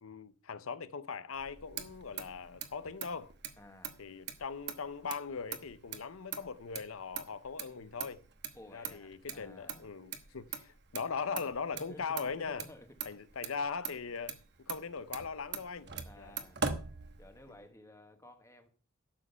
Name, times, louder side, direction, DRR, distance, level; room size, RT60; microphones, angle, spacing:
voice 1, 0.0-3.3 4.0-8.2 8.7-12.7 13.1-14.4 14.7-15.9 16.2-16.3, left 5 dB, 90° left, 0.7 m, -40 dB
Motor vehicle (road), 1.3-17.6, right 6 dB, 55° right, 1.1 m, -43 dB
voice 2, 3.6-4.0 8.5-9.9 11.7-12.9 13.8-14.0 16.0-16.6 17.2-18.7, left 1 dB, 15° left, 1.2 m, -54 dB
11.5 x 7.5 x 5.5 m
head